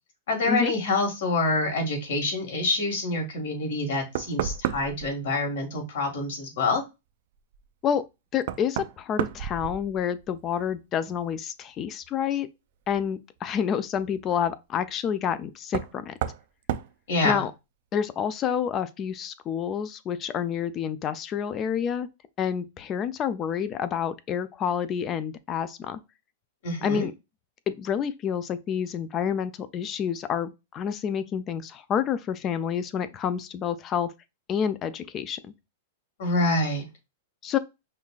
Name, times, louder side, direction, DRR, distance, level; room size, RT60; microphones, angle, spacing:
voice 1, 0.3-6.8 17.1-17.4 26.6-27.1 36.2-36.8, left 2 dB, 65° left, 1.9 m, -26 dB
Knock, 3.7-3.8 4.2-5.1 7.5-7.6 8.4-10.3 10.6-11.2 12.9-13.0 15.7-16.4 16.7-16.9, right 10 dB, 55° right, 0.3 m, -31 dB
voice 2, 8.3-12.5 12.9-16.1 17.2-17.5 17.9-22.1 22.4-26.0 26.8-27.1 27.7-34.1 34.5-35.4 37.4-37.6, left 8 dB, 25° left, 0.3 m, -28 dB
5.5 x 2.4 x 2.4 m
supercardioid pair, 160°, 0 cm